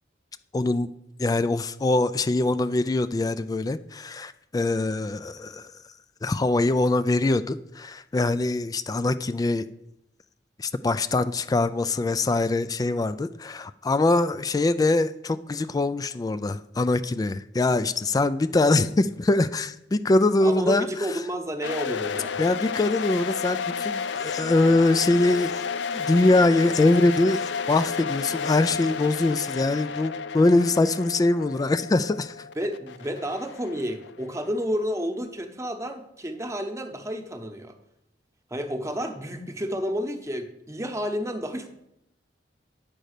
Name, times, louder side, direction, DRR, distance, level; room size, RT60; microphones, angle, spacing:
voice 1, 0.5-0.9 1.2-5.8 6.2-9.6 10.6-20.9 22.4-25.6 25.9-32.5, left 2 dB, 20° left, 13 dB, 0.3 m, -23 dB
voice 2, 20.4-22.4 32.6-37.7 38.5-41.7, equal, 15° right, 6 dB, 0.9 m, -30 dB
sound 1, 21.6-34.5, left 6 dB, 75° left, 0.5 m, -32 dB
8.9 x 5.4 x 6.6 m, 0.82 s
head